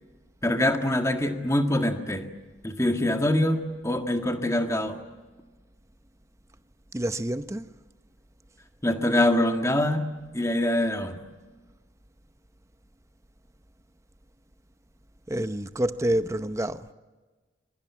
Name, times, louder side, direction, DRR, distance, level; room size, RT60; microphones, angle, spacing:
voice 1, 0.4-2.3 2.6-5.0 8.8-10.1 10.3-11.2, left 1 dB, 15° left, 1.7 m, -24 dB
voice 2, 6.9-7.7 15.3-16.9, right 1 dB, 15° right, 0.7 m, -28 dB
26.0 x 22.5 x 8.3 m
head